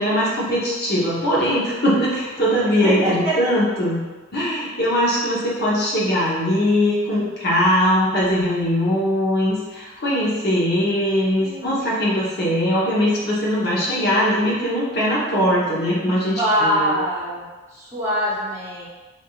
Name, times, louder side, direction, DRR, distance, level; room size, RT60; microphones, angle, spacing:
voice 1, 0.0-4.0 4.3-16.9, equal, 55° left, -7 dB, 1.0 m, -21 dB
voice 2, 2.8-3.3 11.4-12.0 16.4-17.5 17.7-18.9, equal, 15° right, -8 dB, 0.8 m, -23 dB
3.5 x 2.6 x 2.4 m, 1.3 s
head